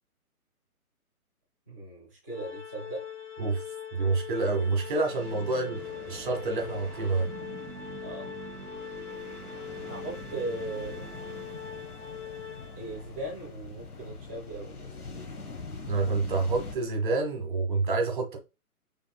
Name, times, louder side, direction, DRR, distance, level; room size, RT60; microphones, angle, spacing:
voice 1, 1.7-3.0 8.0-8.3 9.9-11.0 12.7-14.9, right 2 dB, 5° right, 0.5 m, -38 dB
Organ, 2.3-13.2, left 8 dB, 55° left, 1.1 m, -42 dB
voice 2, 3.9-5.8 6.1-7.3 15.9-18.4, right 3 dB, 35° right, 1.3 m, -28 dB
sound 1, 4.2-12.0, right 5 dB, 75° right, 1.1 m, -47 dB
sound 2, 5.7-16.8, left 3 dB, 80° left, 1.0 m, -44 dB
6.2 x 3.6 x 2.2 m
figure-of-eight pair, 135°, 44 cm